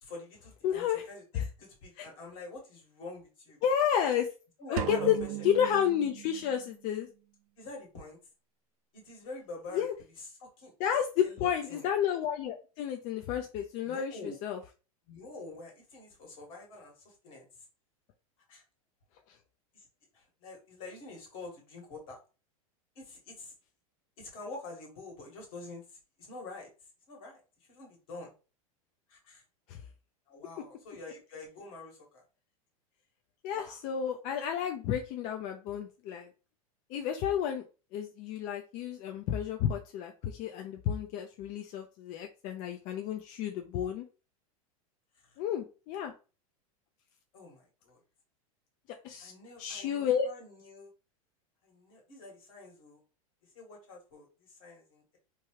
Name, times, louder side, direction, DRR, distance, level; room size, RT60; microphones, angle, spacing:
voice 1, 0.0-1.2 1.6-3.6 4.6-5.5 6.4-6.5 7.6-8.2 8.9-9.9 10.2-10.7 11.2-11.9 13.8-14.3 15.1-17.4 18.5-18.6 19.7-19.8 20.1-22.2 22.9-23.5 24.2-25.8 26.2-26.7 27.1-27.4 27.7-28.3 29.1-29.4 30.3-32.2 33.5-33.8 47.3-48.0 49.2-50.9 51.6-53.0 53.5-55.2, left 2 dB, 70° left, -1 dB, 1.6 m, -46 dB
voice 2, 0.6-1.1 1.3-1.5 2.0-2.1 3.6-4.3 4.7-5.2 5.4-7.1 9.7-9.9 10.8-14.6 19.3-19.4 29.7-29.8 33.4-36.3 36.9-37.6 37.9-44.0 45.4-46.1 49.0-49.3 49.6-50.3, left 9 dB, 45° left, 4 dB, 0.4 m, -31 dB
sound 1, 4.8-6.8, right 12 dB, 70° right, 0.4 m, -37 dB
2.9 x 2.3 x 3.0 m, 0.33 s
hypercardioid pair, 105°, 18 cm